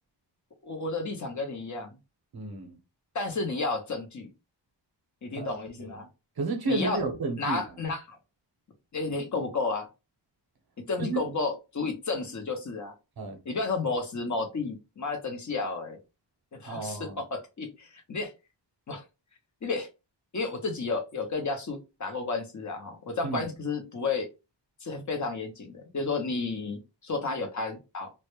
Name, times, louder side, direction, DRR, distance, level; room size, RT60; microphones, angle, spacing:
voice 1, 0.6-2.0 3.1-4.3 5.2-6.1 6.7-7.0 7.4-8.2 8.9-9.9 10.9-12.9 13.5-16.0 16.5-18.3 18.9-19.0 19.6-19.9 20.3-24.3 24.8-28.1, left 3 dB, 40° left, 0.7 m, -32 dB
voice 2, 2.3-2.8 5.4-6.0 6.4-7.6 11.0-11.2 13.2-13.4 16.7-17.2 23.2-23.4, right 3 dB, 55° right, 0.7 m, -32 dB
2.1 x 2.1 x 2.9 m
wide cardioid pair, 120°, 44 cm